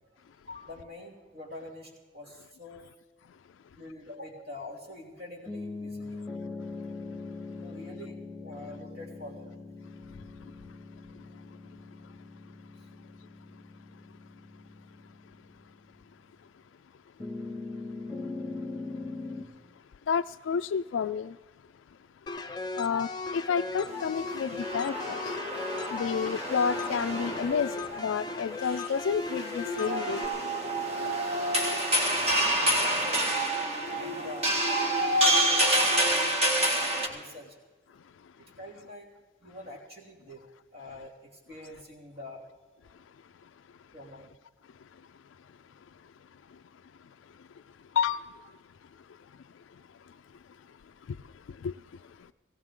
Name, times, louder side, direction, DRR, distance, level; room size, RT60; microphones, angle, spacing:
voice 1, 0.5-2.9 3.8-6.3 7.6-9.5 32.8-33.4 34.0-36.4 36.9-37.6 38.4-39.1 39.4-40.5 40.7-42.4 43.9-44.3, left 1 dB, 50° right, 3.1 m, -45 dB
sound 1, 5.5-16.2 17.2-19.5, left 3 dB, 5° right, 1.8 m, -41 dB
voice 2, 20.1-21.3 22.8-23.1 23.3-25.2 25.9-27.7 28.0-30.2 48.0-48.2 51.6-51.7, left 6 dB, 80° left, 0.3 m, -29 dB
sound 2, 22.3-30.3, left 3 dB, 20° left, 0.6 m, -37 dB
sound 3, 23.9-37.1, right 1 dB, 35° right, 1.8 m, -28 dB
18.5 x 17.0 x 3.7 m
head